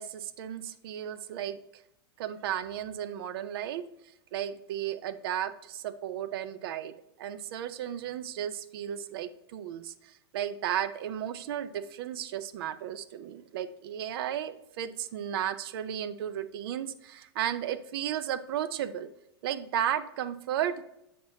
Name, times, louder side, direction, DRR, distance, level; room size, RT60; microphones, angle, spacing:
voice 1, 0.0-1.6 2.2-3.9 4.3-19.1 19.4-20.8, right 10 dB, 60° right, 13 dB, 0.5 m, -34 dB
7.3 x 5.8 x 2.9 m, 0.82 s
hypercardioid pair, 100°, 14 cm